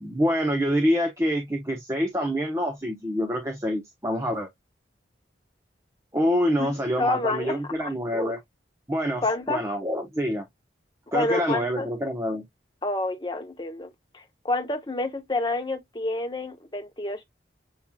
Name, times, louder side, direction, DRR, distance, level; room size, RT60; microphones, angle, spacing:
voice 1, 0.0-4.5 6.1-8.4 8.9-10.5 11.1-12.4, equal, 15° right, 0.9 m, -26 dB
voice 2, 6.6-7.9 9.2-9.6 11.1-11.9 12.8-17.2, left 2 dB, 25° left, 0.9 m, -28 dB
7.1 x 3.1 x 2.3 m
head